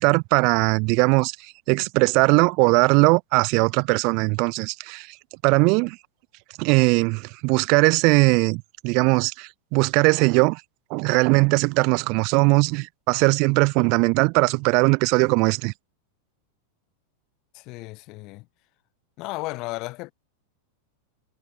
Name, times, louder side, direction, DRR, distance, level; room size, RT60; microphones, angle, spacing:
voice 1, 0.0-1.4 1.7-5.1 5.4-6.0 6.6-10.6 10.9-15.7, right 31 dB, 45° right, 0.5 m, -20 dB
voice 2, 17.5-18.5 19.2-20.1, left 23 dB, 40° left, 2.8 m, -34 dB
figure-of-eight pair, 90°, 0 cm